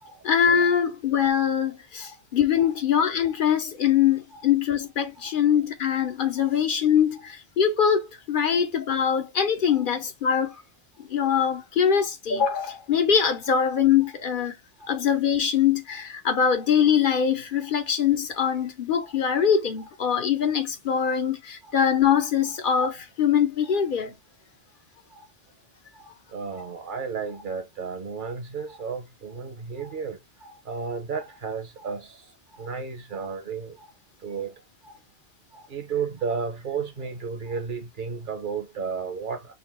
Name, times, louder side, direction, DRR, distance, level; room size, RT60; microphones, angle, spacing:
voice 1, 0.2-10.6 11.0-14.6 14.9-24.1, left 8 dB, 50° left, 1.0 m, -23 dB
voice 2, 25.9-32.2 32.6-33.9 34.2-34.6 34.8-35.0 35.5-39.5, right 5 dB, 50° right, 1.1 m, -33 dB
4.0 x 2.5 x 3.8 m
omnidirectional pair, 1.1 m